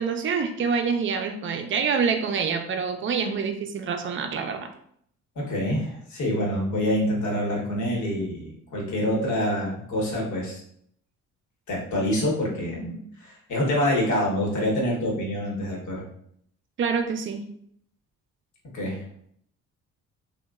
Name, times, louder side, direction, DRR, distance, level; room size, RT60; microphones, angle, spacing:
voice 1, 0.0-4.7 16.8-17.4, right 5 dB, 40° right, 6 dB, 0.4 m, -26 dB
voice 2, 5.4-10.6 11.7-16.0 18.7-19.0, left 1 dB, 75° left, -2 dB, 1.0 m, -26 dB
2.9 x 2.2 x 2.3 m, 0.68 s
cardioid pair, 90°, 30 cm